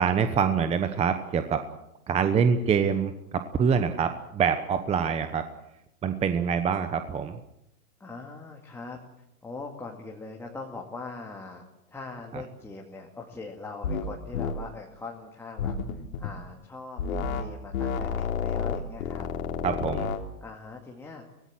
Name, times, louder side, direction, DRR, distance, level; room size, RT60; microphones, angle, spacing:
voice 1, 0.0-1.6 2.1-5.4 6.0-7.4 12.3-12.4 19.6-20.1, right 6 dB, 15° right, 9 dB, 1.0 m, -25 dB
voice 2, 8.0-9.0 9.4-19.3 20.4-21.2, left 3 dB, 5° left, -1 dB, 2.4 m, -41 dB
sound 1, 13.8-14.1 14.3-14.6 15.6-16.3 17.0-17.5 17.7-20.2, left 6 dB, 65° left, 3.3 m, -30 dB
24.0 x 18.0 x 7.7 m, 0.83 s
hypercardioid pair, 130°, 45 cm